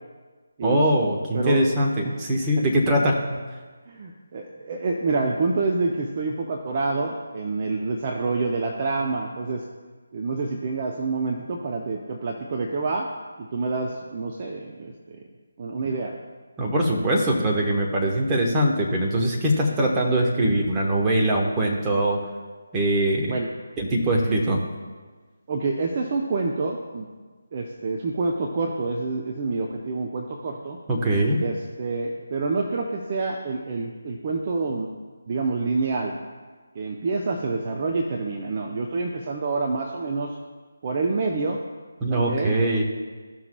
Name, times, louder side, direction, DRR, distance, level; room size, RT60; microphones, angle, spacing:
voice 1, 0.6-3.4 16.6-22.2 22.7-23.3 23.8-24.6 30.9-31.4 42.0-42.8, right 1 dB, 15° right, -1 dB, 1.1 m, -22 dB
voice 2, 3.9-9.6 10.1-13.1 13.4-15.2 15.6-16.1 23.3-23.5 25.5-27.1 27.5-30.8 31.4-34.9 35.3-36.2 36.7-40.4 40.8-41.6 42.1-42.6, right 3 dB, 35° right, 1 dB, 0.6 m, -27 dB
14.0 x 5.9 x 2.3 m, 1.4 s
figure-of-eight pair, 155°, 0 cm